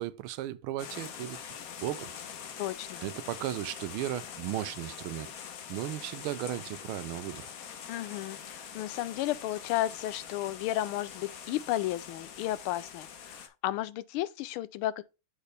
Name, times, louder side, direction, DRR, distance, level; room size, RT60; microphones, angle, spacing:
voice 1, 0.0-1.4 1.8-2.1 3.0-5.3 5.7-7.5, right 13 dB, 80° right, 1.4 m, -35 dB
sound 1, 0.8-13.5, left 7 dB, 60° left, 1.0 m, -44 dB
voice 2, 2.6-3.0 7.9-15.0, left 14 dB, 85° left, 1.4 m, -33 dB
8.0 x 4.1 x 3.4 m
omnidirectional pair, 2.4 m